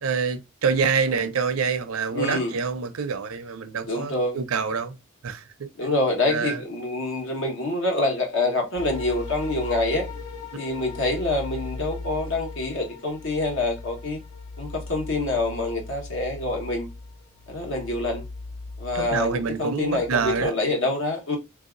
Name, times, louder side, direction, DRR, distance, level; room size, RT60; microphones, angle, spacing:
voice 1, 0.0-5.0 5.2-5.4 6.3-6.6 18.9-20.5, right 5 dB, 75° right, 0.6 m, -26 dB
voice 2, 2.1-2.5 3.9-4.4 5.8-10.1 10.6-14.2 14.6-16.9 17.5-18.2 18.8-21.4, left 2 dB, 65° left, 1.2 m, -26 dB
sound 1, 8.8-20.5, left 3 dB, 85° left, 1.2 m, -38 dB
3.4 x 2.7 x 2.5 m
head